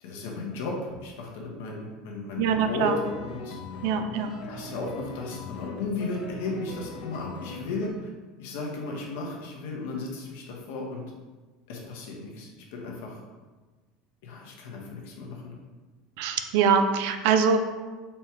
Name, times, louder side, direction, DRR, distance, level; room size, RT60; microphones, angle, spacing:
voice 1, 0.0-2.9 3.2-3.6 4.5-8.1 8.4-11.0 11.7-13.2 14.2-15.4, left 3 dB, 80° left, -1 dB, 1.0 m, -35 dB
voice 2, 2.4-3.0 3.8-4.3 16.2-17.6, right 6 dB, 70° right, 7 dB, 0.4 m, -23 dB
sound 1, 2.6-7.9, left 3 dB, 55° left, 0.7 m, -40 dB
4.3 x 2.2 x 4.4 m, 1.3 s
supercardioid pair, 135°, 0 cm